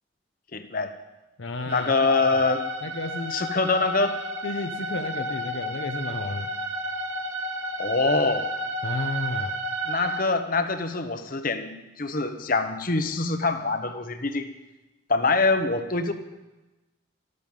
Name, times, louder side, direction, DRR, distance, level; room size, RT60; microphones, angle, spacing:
voice 1, 0.5-0.9 1.7-2.6 3.3-4.2 7.8-8.5 9.8-11.7 12.0-14.5 15.1-16.1, left 3 dB, 45° left, 8 dB, 1.1 m, -24 dB
voice 2, 1.4-1.9 2.8-3.4 4.4-6.5 8.8-9.5, left 2 dB, 70° left, 6 dB, 0.8 m, -32 dB
sound 1, 1.7-10.2, equal, 75° right, 2.4 m, -32 dB
14.0 x 13.5 x 5.6 m, 1.0 s
head